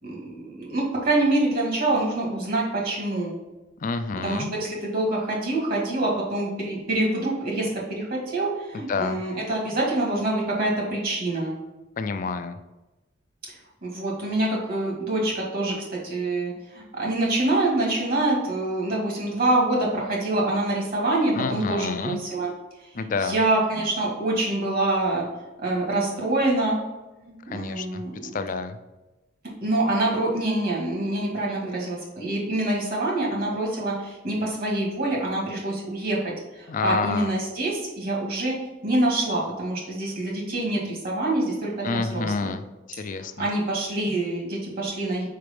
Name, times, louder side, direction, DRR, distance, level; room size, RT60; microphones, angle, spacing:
voice 1, 0.0-3.3 4.2-11.5 13.5-13.6 13.8-22.5 22.9-25.3 25.6-26.8 27.2-28.4 29.6-38.5 38.8-42.5 43.1-45.3, right 2 dB, 50° right, -3 dB, 2.0 m, -26 dB
voice 2, 3.8-4.5 8.7-9.2 12.0-12.6 21.4-22.2 22.9-23.4 27.5-28.8 36.7-37.3 41.8-43.5, left 4 dB, 45° left, 10 dB, 0.4 m, -29 dB
4.7 x 4.7 x 5.2 m, 1.1 s
head